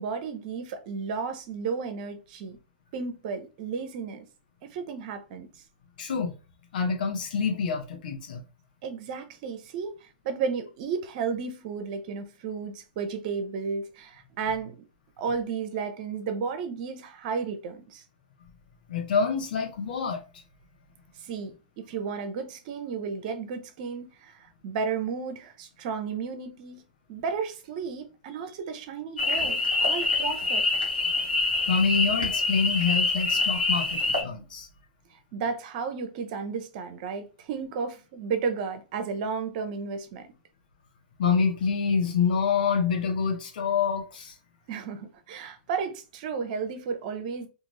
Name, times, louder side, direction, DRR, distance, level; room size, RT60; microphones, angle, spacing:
voice 1, 0.0-2.6 2.9-4.3 4.6-5.5 8.8-14.8 15.2-18.0 21.2-26.8 27.1-30.6 35.1-40.3 44.7-47.5, right 5 dB, 55° right, 0.7 m, -33 dB
voice 2, 6.0-6.3 6.7-8.4 18.9-20.2 31.7-34.7 41.2-44.3, left 5 dB, 65° left, 0.9 m, -26 dB
sound 1, 29.2-34.2, left 3 dB, 90° left, 1.1 m, -26 dB
2.6 x 2.5 x 3.1 m
hypercardioid pair, 105°, 5 cm